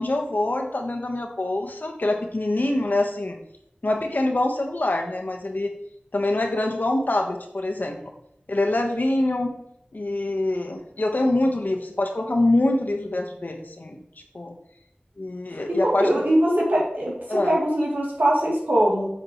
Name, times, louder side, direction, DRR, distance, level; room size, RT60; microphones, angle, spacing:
voice 1, 0.0-3.4 3.8-5.7 6.1-8.1 8.5-9.6 9.9-14.0 14.3-14.5 15.2-16.1 17.3-17.5, left 2 dB, 65° left, 3 dB, 1.3 m, -25 dB
voice 2, 15.7-19.1, right 1 dB, 90° right, -5 dB, 3.1 m, -22 dB
8.0 x 7.2 x 3.2 m, 0.74 s
wide cardioid pair, 55°, 3 cm